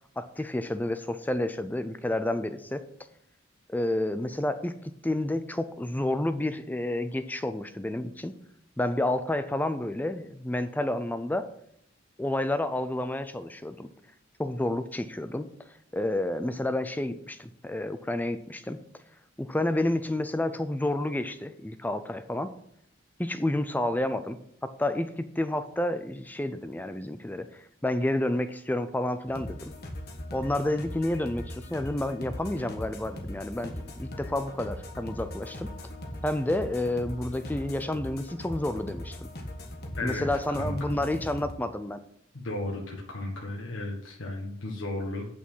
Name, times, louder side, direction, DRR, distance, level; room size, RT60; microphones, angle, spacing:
voice 1, 0.2-2.8 3.7-8.3 8.8-11.5 12.2-13.9 14.4-15.5 15.9-18.8 19.4-22.5 23.2-24.4 24.6-29.7 30.3-35.7 36.2-39.3 40.0-42.0, left 1 dB, 10° left, 10 dB, 0.4 m, -30 dB
sound 1, 29.3-41.5, left 1 dB, 50° left, 1.4 m, -40 dB
voice 2, 40.0-41.0 42.3-45.3, left 2 dB, 70° left, -1 dB, 1.5 m, -34 dB
8.7 x 6.1 x 5.5 m, 0.71 s
head